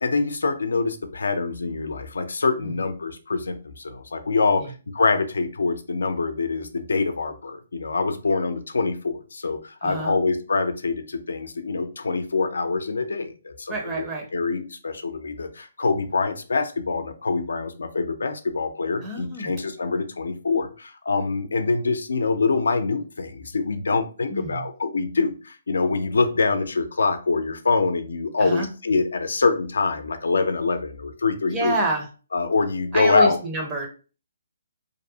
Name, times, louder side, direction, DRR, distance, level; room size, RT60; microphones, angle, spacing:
voice 1, 0.0-14.1 14.3-31.8 32.3-33.4, left 4 dB, 85° left, 7 dB, 0.4 m, -25 dB
voice 2, 9.8-10.2 13.7-14.3 19.0-19.5 24.3-24.7 28.4-28.7 31.5-32.1 32.9-33.9, right 1 dB, 15° right, 1 dB, 0.5 m, -28 dB
2.6 x 2.0 x 2.6 m, 0.34 s
hypercardioid pair, 160°, 0 cm